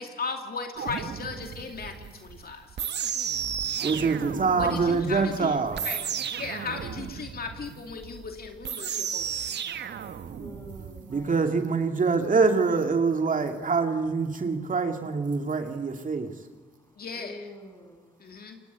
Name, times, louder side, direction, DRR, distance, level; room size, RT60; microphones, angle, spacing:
voice 1, 0.0-2.8 4.5-5.6 5.8-6.1 6.4-9.5 17.0-17.5 18.2-18.6, left 4 dB, 50° left, 4 dB, 2.5 m, -36 dB
sound 1, 0.8-11.2, right 8 dB, 60° right, 1.5 m, -34 dB
voice 2, 3.8-5.8 11.1-16.3, right 4 dB, 40° right, 5 dB, 2.5 m, -25 dB
voice 3, 10.4-11.3 17.1-18.0, left 1 dB, 15° left, 5 dB, 7.1 m, -45 dB
27.0 x 21.5 x 8.3 m, 1.4 s
supercardioid pair, 65°, 20 cm